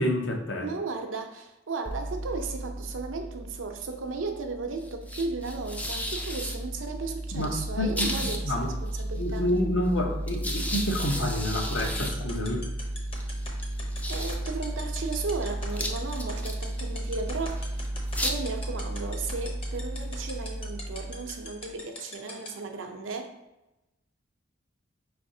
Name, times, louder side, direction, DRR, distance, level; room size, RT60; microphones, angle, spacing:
voice 1, 0.0-0.7 7.3-8.7 9.2-12.7, left 1 dB, 65° left, 3 dB, 0.7 m, -29 dB
voice 2, 0.6-9.5 14.1-17.8 18.2-23.3, right 4 dB, 80° right, 5 dB, 0.6 m, -35 dB
sound 1, 1.9-21.8, right 1 dB, 10° left, 0.3 m, -33 dB
sound 2, 11.6-22.5, left 3 dB, 30° left, 0.7 m, -39 dB
4.8 x 3.3 x 2.7 m, 0.98 s
head